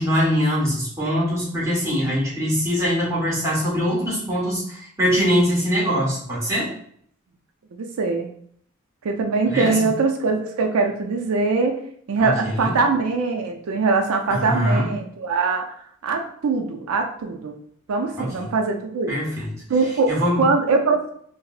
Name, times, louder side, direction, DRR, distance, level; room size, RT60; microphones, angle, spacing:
voice 1, 0.0-6.7 9.5-9.9 12.2-12.7 14.3-14.9 18.2-18.5 19.1-19.5 20.1-20.4, equal, 15° right, -7 dB, 1.2 m, -22 dB
voice 2, 7.7-8.3 9.0-11.8 12.1-15.6 16.0-17.6 17.9-19.1 19.7-20.1 20.4-21.0, right 4 dB, 85° right, 3 dB, 0.4 m, -22 dB
4.7 x 2.0 x 2.4 m, 0.63 s
head